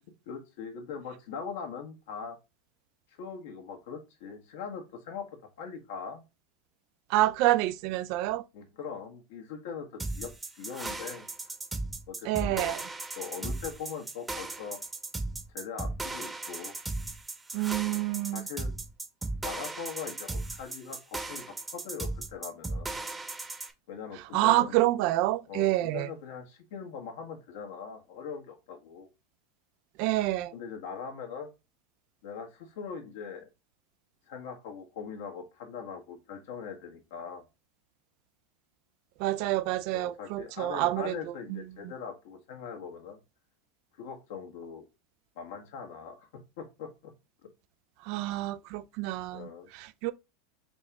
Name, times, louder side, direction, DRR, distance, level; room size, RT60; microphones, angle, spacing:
voice 1, 0.3-2.4 3.1-5.3 5.6-6.2 8.5-11.3 12.1-12.8 13.2-14.8 15.5-16.8 18.3-18.7 19.4-23.0 23.9-24.8 25.5-29.1 30.5-31.5 32.2-33.5 34.3-37.4 39.9-43.2 43.9-44.8 45.3-46.3 46.6-47.1 49.3-49.7, left 6 dB, 70° left, 1.4 m, -41 dB
voice 2, 7.1-8.4 12.2-12.8 17.5-18.5 24.3-26.1 30.0-30.5 39.2-41.1 41.5-41.6 48.0-50.1, right 16 dB, 60° right, 0.4 m, -28 dB
sound 1, 10.0-23.7, right 2 dB, 10° right, 0.9 m, -36 dB
4.2 x 2.9 x 3.4 m
hypercardioid pair, 105°, 0 cm